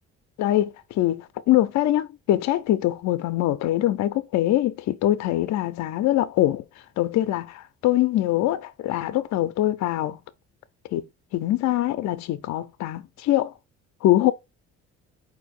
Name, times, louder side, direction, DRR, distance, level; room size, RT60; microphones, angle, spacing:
voice 1, 0.4-6.6 7.0-10.2 10.9-11.0 11.3-13.5 14.0-14.3, left 14 dB, 65° left, 0.4 m, -23 dB
4.3 x 2.6 x 4.2 m
cardioid pair, 90°, 30 cm